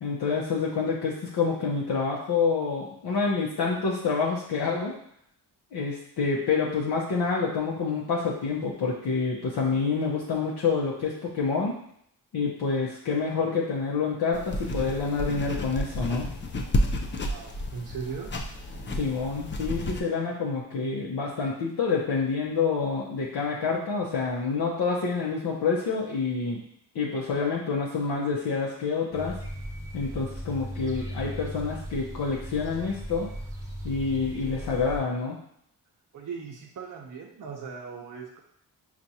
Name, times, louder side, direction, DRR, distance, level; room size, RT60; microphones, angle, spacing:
voice 1, 0.0-4.9 5.7-11.8 12.3-16.3 18.9-26.6 26.9-29.3 29.9-33.3 33.8-35.4, left 4 dB, 60° left, -4 dB, 0.8 m, -27 dB
sound 1, 14.3-20.0, left 1 dB, 25° left, 0.5 m, -31 dB
voice 2, 17.2-18.3 30.8-31.1 36.1-38.4, right 5 dB, 45° right, -1 dB, 0.7 m, -39 dB
sound 2, 29.1-35.0, equal, 5° right, 0.8 m, -37 dB
4.6 x 2.5 x 2.7 m, 0.70 s
cardioid pair, 60°, 43 cm